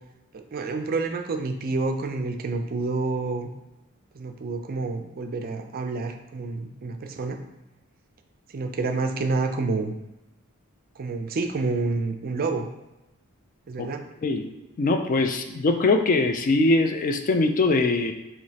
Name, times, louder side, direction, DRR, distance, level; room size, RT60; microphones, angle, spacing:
voice 1, 0.3-3.5 4.1-7.4 8.5-9.9 11.0-12.7 13.7-14.1, right 3 dB, 45° right, 6 dB, 0.4 m, -28 dB
voice 2, 14.8-18.1, left 3 dB, 40° left, 6 dB, 0.3 m, -22 dB
4.9 x 3.0 x 2.8 m, 0.99 s
head